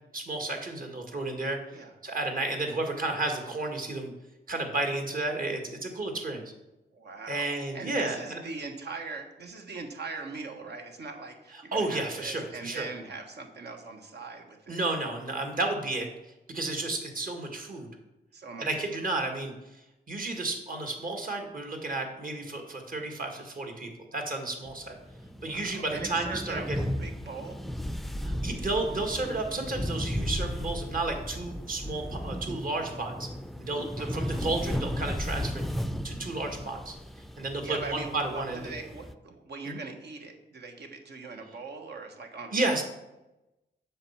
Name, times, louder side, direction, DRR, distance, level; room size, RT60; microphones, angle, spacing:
voice 1, 0.1-1.6 2.0-4.1 4.5-6.4 7.3-8.4 11.5-12.9 14.7-17.9 18.6-25.0 25.4-26.9 28.2-33.3 33.6-35.6 36.0-37.0 37.4-38.6 39.7-39.8 42.5-42.8, right 2 dB, 50° right, 4 dB, 1.9 m, -32 dB
voice 2, 6.9-14.8 18.3-18.7 18.9-19.1 25.4-26.6 27.0-27.6 34.0-34.3 37.6-42.5, right 4 dB, 70° right, 4 dB, 1.4 m, -41 dB
sound 1, 24.7-39.1, equal, ahead, 0.5 m, -35 dB
7.8 x 5.9 x 5.8 m, 0.97 s
cardioid pair, 80°, 18 cm